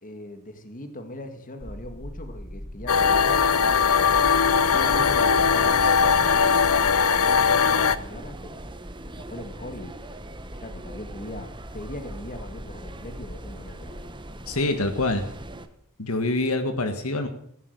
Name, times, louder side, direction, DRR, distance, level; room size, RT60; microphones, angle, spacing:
voice 1, 0.0-4.3 4.6-8.6 9.1-10.0 10.5-14.1, left 1 dB, 40° left, 7 dB, 2.1 m, -39 dB
sound 1, 1.6-15.6, equal, 5° left, 1.8 m, -40 dB
sound 2, 2.9-8.0, left 6 dB, 90° left, 0.7 m, -20 dB
sound 3, 2.9-15.7, right 2 dB, 20° right, 1.1 m, -42 dB
voice 2, 14.5-15.2 16.0-17.3, left 2 dB, 75° left, 7 dB, 1.7 m, -25 dB
16.0 x 10.5 x 8.3 m, 0.67 s
head